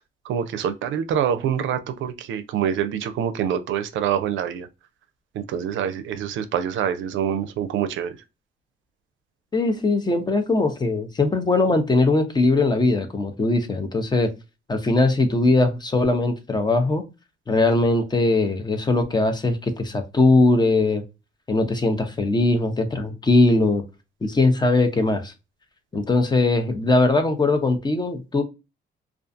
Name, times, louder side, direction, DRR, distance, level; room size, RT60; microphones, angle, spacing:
voice 1, 0.3-4.7 5.4-8.2, right 9 dB, 75° right, 0.5 m, -25 dB
voice 2, 9.5-14.3 14.7-17.1 17.5-21.0 21.5-23.8 24.2-25.3 25.9-28.4, left 2 dB, 20° left, 0.6 m, -20 dB
2.4 x 2.3 x 2.5 m
cardioid pair, 90°, 20 cm